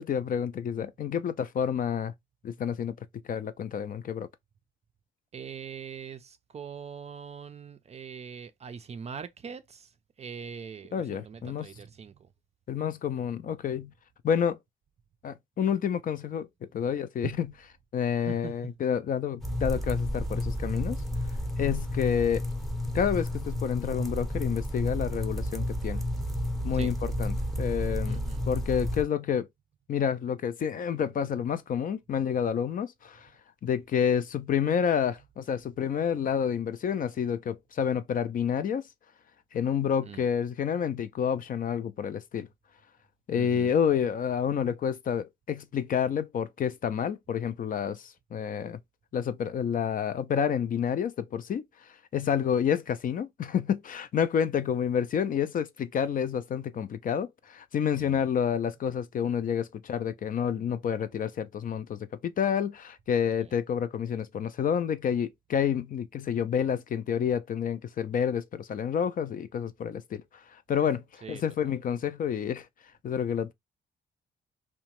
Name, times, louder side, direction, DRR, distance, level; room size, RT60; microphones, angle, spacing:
voice 1, 0.0-2.1 2.4-3.0 3.3-4.3 10.9-11.7 12.7-13.9 14.2-14.6 15.2-16.5 16.7-17.5 17.9-21.0 21.6-22.5 22.9-26.0 26.6-28.2 28.5-29.5 29.9-33.3 33.6-38.9 39.5-42.5 43.3-48.8 49.1-51.6 52.1-70.2 70.7-72.7 73.0-73.5, left 8 dB, 45° left, 0.4 m, -29 dB
voice 2, 5.3-9.9 10.2-12.2 17.2-17.4 18.2-18.5 26.7-27.0 28.1-28.5 40.0-40.2 43.3-43.8 58.0-58.2 63.4-63.5 71.2-71.7, right 6 dB, 35° right, 0.4 m, -42 dB
sound 1, 19.4-29.0, equal, ahead, 0.7 m, -31 dB
2.8 x 2.1 x 2.9 m
cardioid pair, 90°, 20 cm